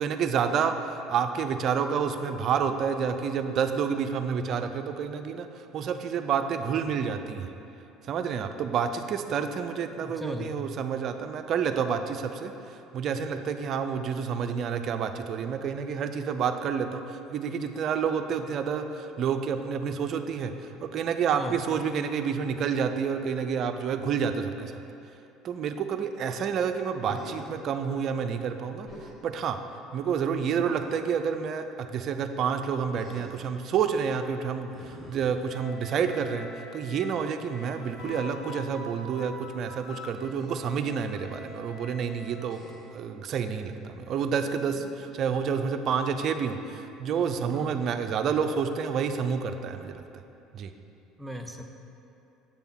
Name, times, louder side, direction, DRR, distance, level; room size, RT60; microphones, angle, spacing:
voice 1, 0.0-5.5 5.7-7.5 8.1-24.8 25.4-28.9 29.2-29.6 29.9-42.6 42.9-50.0 50.5-50.7, right 6 dB, 50° right, 7 dB, 0.4 m, -29 dB
voice 2, 10.0-10.5 21.3-21.6 47.5-47.8 51.2-51.6, equal, 5° right, 3 dB, 0.7 m, -37 dB
Human voice, 27.0-27.6 28.8-29.2 30.5-31.2 32.9-33.6 34.7-35.9 38.0-38.2 40.2-40.5 42.5-43.0 44.6-45.1, left 1 dB, 35° left, 1.2 m, -46 dB
Wind instrument woodwind instrument, 35.4-42.5, left 4 dB, 70° left, 0.7 m, -45 dB
7.2 x 3.5 x 6.0 m, 2.8 s
hypercardioid pair, 70°, 0 cm